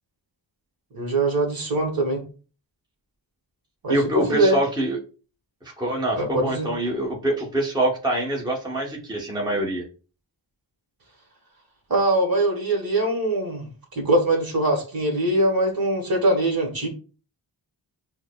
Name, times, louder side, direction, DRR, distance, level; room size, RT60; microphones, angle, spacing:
voice 1, 0.9-2.2 3.8-4.6 6.1-6.7 11.9-16.9, right 2 dB, 50° right, 2 dB, 1.3 m, -22 dB
voice 2, 3.9-5.0 5.6-9.8, right 1 dB, 10° right, -2 dB, 0.9 m, -25 dB
6.2 x 2.1 x 2.2 m, 0.36 s
wide cardioid pair, 75°, 46 cm